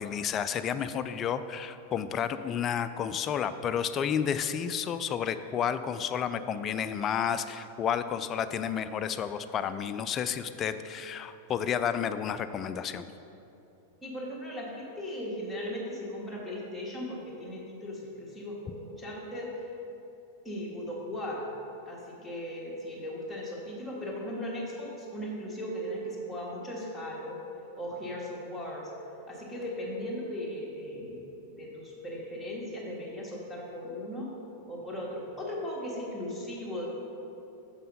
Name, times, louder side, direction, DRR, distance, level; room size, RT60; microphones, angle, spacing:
voice 1, 0.0-13.1, left 8 dB, 30° left, 11 dB, 0.3 m, -31 dB
voice 2, 14.0-19.5 20.4-21.4 21.9-27.4 27.8-28.9 29.3-34.3 34.7-36.8, equal, 5° left, -6 dB, 1.7 m, -37 dB
6.4 x 5.5 x 5.5 m, 2.8 s
figure-of-eight pair, 90°, 0 cm